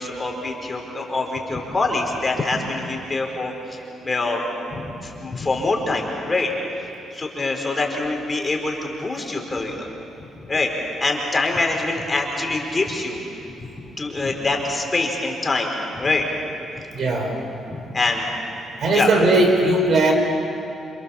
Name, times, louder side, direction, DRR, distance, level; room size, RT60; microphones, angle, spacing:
voice 1, 0.0-6.5 7.1-9.9 10.5-13.2 13.6-16.3 17.7-18.3 18.9-19.1, left 2 dB, 25° left, 1 dB, 4.9 m, -25 dB
voice 2, 16.9-17.4 18.8-20.1, right 2 dB, 60° right, 3 dB, 5.2 m, -18 dB
29.0 x 27.5 x 7.4 m, 2.8 s
cardioid pair, 90°, 0 cm